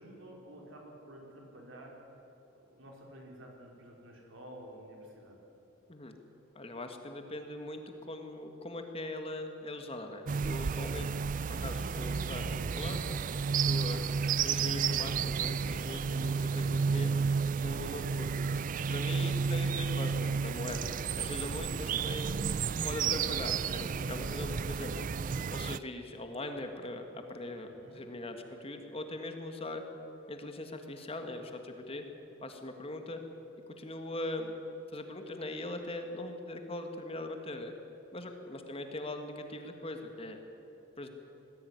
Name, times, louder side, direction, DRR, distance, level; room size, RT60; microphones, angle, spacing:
voice 1, 0.0-2.2 2.5-5.4 19.1-20.0 27.7-28.0, right 1 dB, 75° right, 0 dB, 4.5 m, -51 dB
voice 2, 6.6-11.1 11.5-13.0 13.6-14.1 14.4-17.1 17.6-18.3 18.9-20.9 21.2-22.3 22.8-25.1 25.5-29.8 30.3-32.1 32.4-33.2 33.8-34.5 34.9-37.7 38.1-40.4 41.0-41.1, left 2 dB, 30° left, 5 dB, 1.8 m, -41 dB
sound 1, 10.3-25.8, right 5 dB, 40° right, 0.4 m, -32 dB
20.5 x 15.5 x 9.6 m, 3.0 s
head